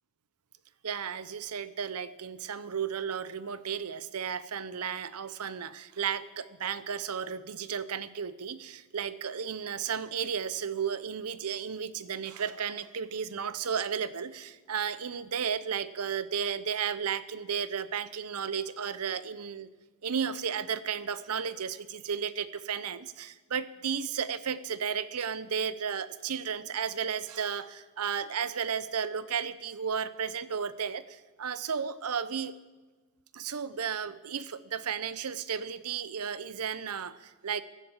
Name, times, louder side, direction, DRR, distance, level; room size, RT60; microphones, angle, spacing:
voice 1, 0.8-19.7 20.0-32.5 33.3-37.6, right 7 dB, 85° right, 15 dB, 0.7 m, -34 dB
15.5 x 10.5 x 7.1 m, 1.3 s
head